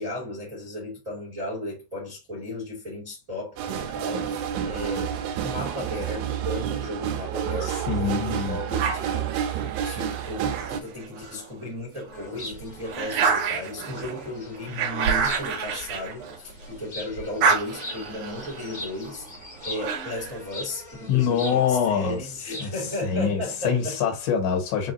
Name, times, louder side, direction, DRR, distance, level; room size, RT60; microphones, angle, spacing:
voice 1, 0.0-5.1 5.4-19.2 19.6-23.9, left 1 dB, 45° right, 1.0 m, -35 dB
sound 1, 3.6-10.8, right 9 dB, 85° right, 2.9 m, -29 dB
voice 2, 7.6-8.6 21.1-22.3 22.6-24.9, left 7 dB, 75° left, 3.7 m, -25 dB
dog attack, 8.8-11.5 12.0-16.8 17.1-20.4, right 5 dB, 65° right, 2.2 m, -29 dB
sound 2, 12.1-23.0, left 1 dB, 50° left, 1.4 m, -42 dB
7.1 x 2.4 x 2.7 m
omnidirectional pair, 5.0 m